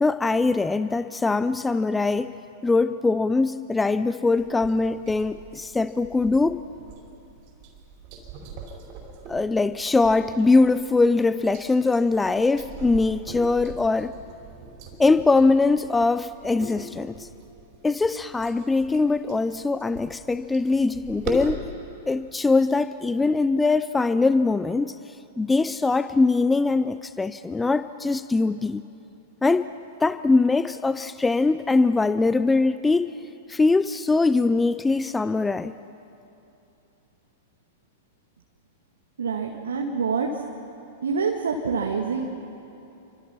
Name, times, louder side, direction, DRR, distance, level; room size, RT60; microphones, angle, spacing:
voice 1, 0.0-2.3 2.6-6.6 9.3-14.2 15.0-17.3 17.8-21.6 22.1-25.0 25.4-28.9 29.4-29.7 30.0-33.1 33.5-35.7, left 3 dB, 10° left, 13 dB, 0.5 m, -22 dB
sound 1, 4.4-21.6, right 2 dB, 40° right, 4.9 m, -41 dB
voice 2, 39.2-40.3 41.0-42.3, right 5 dB, 70° right, 1 dB, 1.9 m, -26 dB
28.5 x 25.0 x 5.8 m, 2.9 s
figure-of-eight pair, 100°, 0 cm